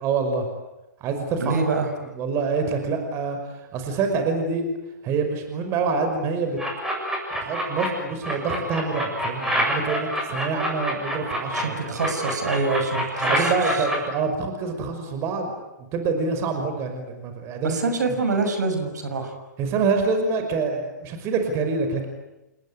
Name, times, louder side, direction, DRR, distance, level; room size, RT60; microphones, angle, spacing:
voice 1, 0.0-0.5 1.0-1.6 2.2-3.4 3.7-4.6 5.0-6.6 7.4-12.0 13.2-15.5 15.8-17.8 19.6-22.1, right 4 dB, 25° right, 6 dB, 5.8 m, -26 dB
voice 2, 1.4-1.9 11.5-13.5 17.6-19.3, right 3 dB, 65° right, 6 dB, 6.3 m, -25 dB
sound 1, 6.6-7.9 8.2-11.6 12.0-14.0, equal, 5° right, 7.8 m, -26 dB
29.0 x 20.5 x 9.8 m, 0.96 s
figure-of-eight pair, 125°, 10 cm